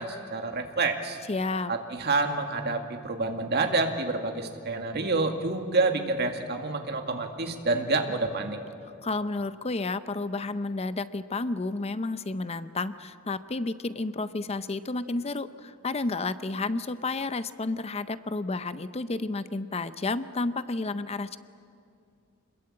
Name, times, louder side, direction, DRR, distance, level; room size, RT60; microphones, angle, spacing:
voice 1, 0.0-1.2 1.7-8.6, right 3 dB, 50° right, 4 dB, 2.1 m, -28 dB
voice 2, 1.3-1.7 9.0-21.4, left 3 dB, 30° left, 13 dB, 0.6 m, -31 dB
26.0 x 21.0 x 8.8 m, 2.4 s
head